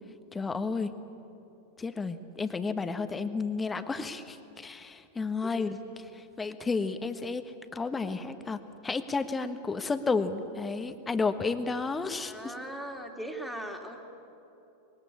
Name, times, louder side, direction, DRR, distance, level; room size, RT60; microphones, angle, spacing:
voice 1, 0.3-0.9 1.8-5.8 6.4-7.4 7.7-12.5, left 4 dB, 15° left, 10 dB, 1.4 m, -32 dB
voice 2, 5.4-5.8 12.2-14.0, right 1 dB, ahead, 3 dB, 2.7 m, -39 dB
25.5 x 21.5 x 8.7 m, 3.0 s
figure-of-eight pair, 90°, 0 cm